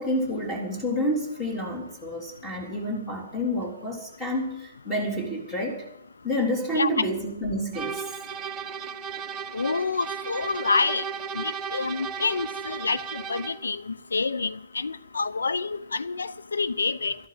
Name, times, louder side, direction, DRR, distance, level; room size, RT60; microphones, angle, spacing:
voice 1, 0.0-5.8 6.2-8.0, equal, 10° left, 3.7 m, -29 dB
voice 2, 6.7-7.1 9.5-11.0 11.3-17.2, left 4 dB, 75° left, 0.7 m, -28 dB
sound 1, 7.7-13.7, right 7 dB, 20° right, 0.8 m, -35 dB
12.5 x 11.0 x 7.7 m
figure-of-eight pair, 120°, 0 cm